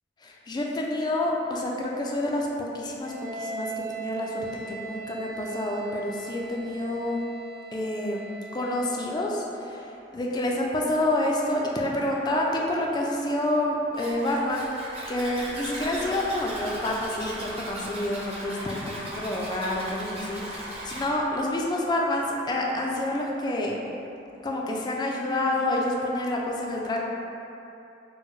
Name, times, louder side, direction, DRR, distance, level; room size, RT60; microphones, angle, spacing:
voice 1, 0.2-7.2 7.7-14.7 15.1-23.8 24.4-27.0, left 1 dB, 20° left, -1 dB, 0.3 m, -28 dB
Wind instrument woodwind instrument, 3.0-9.1, right 5 dB, 85° right, 0.4 m, -39 dB
Zipper (clothing), 13.9-21.1, right 1 dB, 35° right, 0.6 m, -37 dB
4.4 x 2.0 x 2.9 m, 2.9 s
head